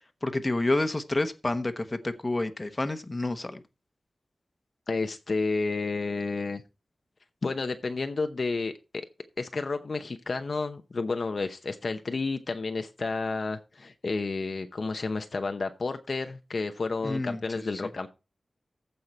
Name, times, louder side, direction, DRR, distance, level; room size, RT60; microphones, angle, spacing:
voice 1, 0.2-3.6 17.0-17.9, left 2 dB, 25° left, 1.1 m, -29 dB
voice 2, 4.9-6.6 7.4-9.1 9.4-18.1, left 3 dB, 55° left, 0.8 m, -31 dB
14.5 x 5.6 x 4.3 m
wide cardioid pair, 100°, 0 cm